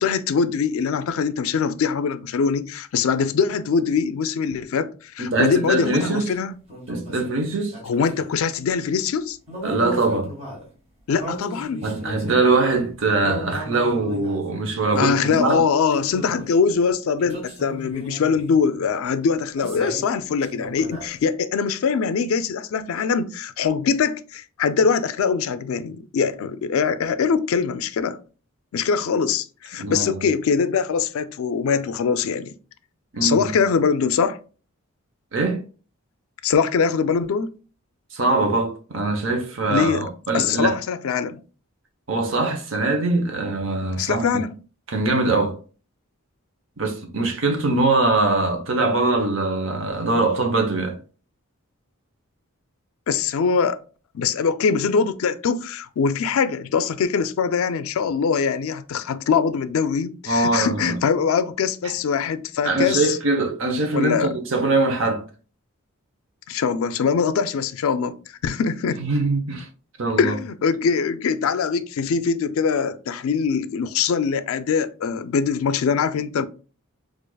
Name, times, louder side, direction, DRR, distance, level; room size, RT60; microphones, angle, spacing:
voice 1, 0.0-6.5 7.8-9.4 11.1-11.8 15.0-28.2 28.7-32.5 33.2-34.4 36.4-37.5 39.7-40.0 40.3-41.4 44.0-44.5 53.1-53.8 54.1-63.2 63.9-64.3 66.5-68.1 68.4-69.0 70.2-76.5, left 6 dB, 75° left, 0.3 m, -22 dB
voice 2, 5.2-6.3 6.9-7.8 9.6-10.3 11.8-15.6 29.8-30.2 33.1-33.5 35.3-35.6 38.1-40.8 42.1-44.3 44.9-45.6 46.8-51.0 60.3-61.0 61.8-61.9 62.6-65.2 69.0-69.7 70.0-70.3, right 3 dB, 60° right, 0.7 m, -22 dB
sound 1, 5.6-6.2 6.7-8.3 9.5-10.6 11.1-12.7 13.2-14.4 14.9-15.6 15.9-16.6 17.2-18.6 19.6-20.1 20.4-21.1, equal, 30° right, 1.5 m, -35 dB
4.6 x 2.4 x 2.2 m
head